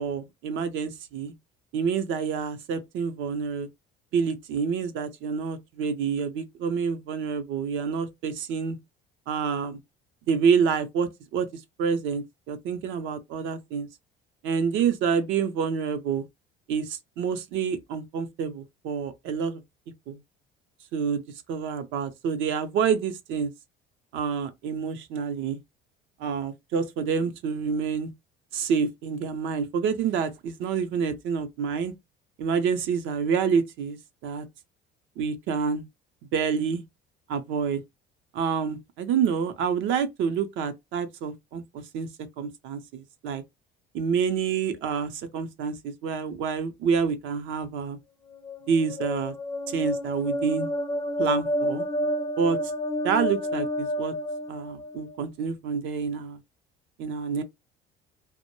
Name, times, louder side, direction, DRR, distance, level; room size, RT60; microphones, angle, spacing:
voice 1, 0.0-1.3 1.7-3.7 4.1-8.8 9.3-9.8 10.3-11.5 11.8-13.9 14.4-16.3 16.7-19.6 20.1-20.2 20.9-21.2 21.5-23.5 24.1-25.6 26.2-28.1 28.5-31.9 32.4-34.5 35.2-35.9 36.3-36.8 37.3-37.8 38.3-42.1 42.4-43.4 43.9-48.0 48.7-49.3 49.7-50.7 51.2-51.9 52.4-52.6 53.0-54.1 54.5-56.4 57.0-57.4, right 6 dB, 70° right, 0.6 m, -28 dB
sound 1, 48.3-55.2, equal, 15° left, 0.4 m, -30 dB
2.1 x 2.0 x 2.9 m
cardioid pair, 110°, 21 cm